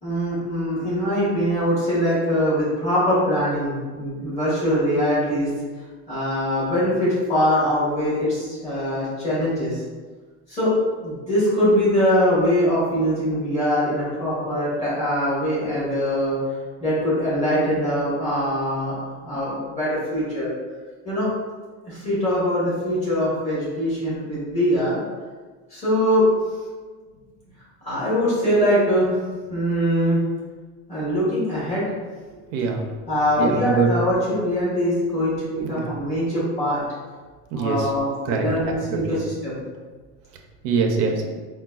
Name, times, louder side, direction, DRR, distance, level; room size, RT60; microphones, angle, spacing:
voice 1, 0.0-5.5 6.1-9.8 10.5-10.7 11.0-16.3 16.8-20.5 21.0-21.3 21.8-25.0 25.7-26.3 27.8-29.1 29.5-30.2 30.9-31.8 33.1-36.8 37.5-39.6, equal, 20° left, -10 dB, 1.2 m, -22 dB
voice 2, 32.5-32.9 33.4-33.9 35.6-35.9 37.5-37.9 38.3-38.5 38.9-39.2 40.6-41.3, right 5 dB, 50° right, 2 dB, 0.4 m, -23 dB
3.9 x 2.1 x 2.3 m, 1.4 s
cardioid pair, 170°, 31 cm